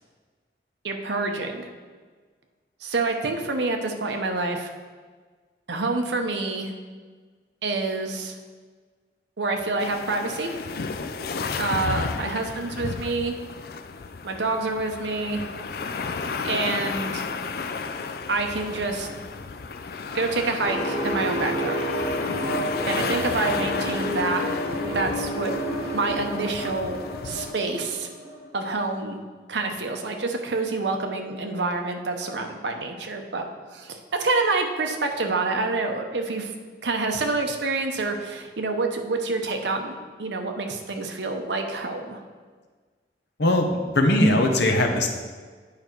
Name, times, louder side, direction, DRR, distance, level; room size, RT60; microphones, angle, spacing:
voice 1, 0.8-1.7 2.8-4.7 5.7-6.7 7.6-8.3 9.4-10.6 11.6-13.4 14.2-15.4 16.4-17.2 18.3-19.1 20.1-21.9 22.9-24.4 24.9-25.5 25.9-27.0 27.2-28.1 28.5-29.2 29.5-33.4 33.7-36.5 36.8-39.9 40.2-42.2, right 3 dB, 80° right, 4 dB, 0.9 m, -27 dB
sound 1, 9.8-27.5, left 4 dB, 55° left, 0.4 m, -33 dB
sound 2, 20.6-29.0, equal, 40° left, 1.8 m, -30 dB
voice 2, 43.4-45.1, left 1 dB, 75° left, 2 dB, 0.9 m, -20 dB
8.6 x 5.1 x 4.5 m, 1.5 s
head